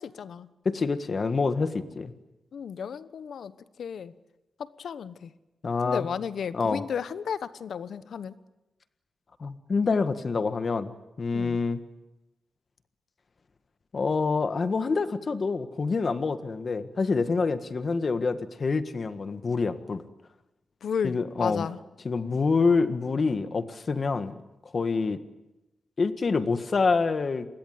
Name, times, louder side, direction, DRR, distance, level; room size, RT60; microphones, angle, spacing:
voice 1, 0.0-0.5 2.5-4.1 4.6-5.3 5.8-8.4 11.3-11.6 20.8-21.8, left 7 dB, 80° left, 15 dB, 1.1 m, -34 dB
voice 2, 0.6-2.1 5.6-6.1 6.5-6.8 9.4-10.9 11.2-11.8 13.9-20.0 21.0-21.7 22.0-24.3 24.7-25.2 26.0-27.5, left 4 dB, 40° left, 11 dB, 1.6 m, -26 dB
28.0 x 21.0 x 9.4 m, 0.98 s
wide cardioid pair, 135°, 0 cm